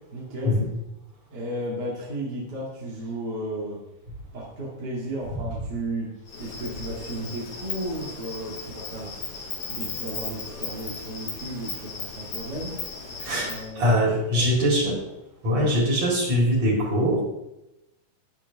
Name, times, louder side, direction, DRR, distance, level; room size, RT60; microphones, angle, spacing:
voice 1, 0.1-0.6 1.3-3.8 4.3-6.1 6.4-9.1 9.7-12.8 13.5-14.7, right 1 dB, 35° right, -5 dB, 2.5 m, -34 dB
Insect, 6.3-13.7, left 4 dB, 55° left, 3.1 m, -36 dB
voice 2, 13.2-15.0 15.4-17.2, equal, 50° right, -4 dB, 5.2 m, -22 dB
11.0 x 10.5 x 3.6 m, 0.91 s
omnidirectional pair, 3.9 m